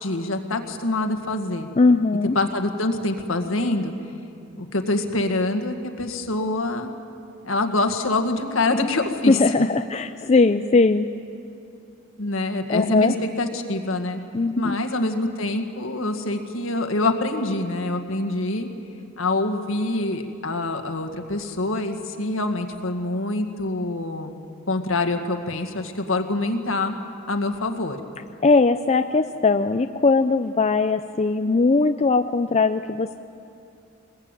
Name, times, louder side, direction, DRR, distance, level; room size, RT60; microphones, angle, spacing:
voice 1, 0.0-1.7 2.4-3.9 4.6-6.9 7.4-9.5 12.2-14.2 14.6-18.7 19.2-24.4 24.7-27.0 27.3-28.0, left 2 dB, 70° left, 6 dB, 1.8 m, -25 dB
voice 2, 1.8-2.4 9.3-11.1 12.7-13.1 14.3-14.8 28.4-33.1, left 3 dB, 30° left, 8 dB, 0.5 m, -19 dB
22.5 x 20.5 x 9.0 m, 2.6 s
head